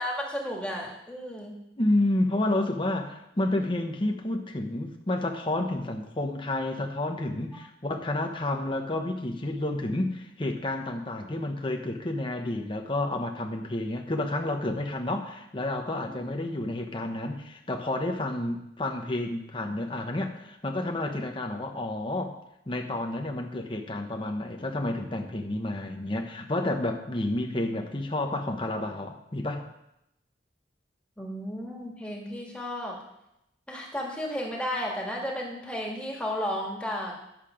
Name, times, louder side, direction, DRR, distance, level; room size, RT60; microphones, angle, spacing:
voice 1, 0.0-1.6 16.1-16.2 31.2-33.0 33.7-37.1, equal, 5° left, -2 dB, 1.7 m, -33 dB
voice 2, 1.8-22.4 22.7-29.6, left 1 dB, 30° left, 3 dB, 1.0 m, -30 dB
10.5 x 7.4 x 5.0 m, 0.83 s
head